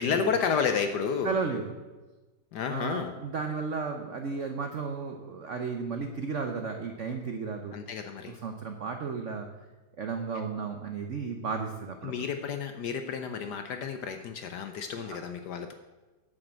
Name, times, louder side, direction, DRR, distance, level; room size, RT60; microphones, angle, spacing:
voice 1, 0.0-1.4 2.5-3.1 7.7-8.4 12.0-15.7, left 6 dB, 70° left, 7 dB, 1.0 m, -31 dB
voice 2, 1.2-1.7 2.7-7.8 8.3-9.5 10.0-12.1 15.0-15.2, right 5 dB, 75° right, 5 dB, 0.6 m, -34 dB
9.1 x 6.4 x 7.5 m, 1.2 s
omnidirectional pair, 2.3 m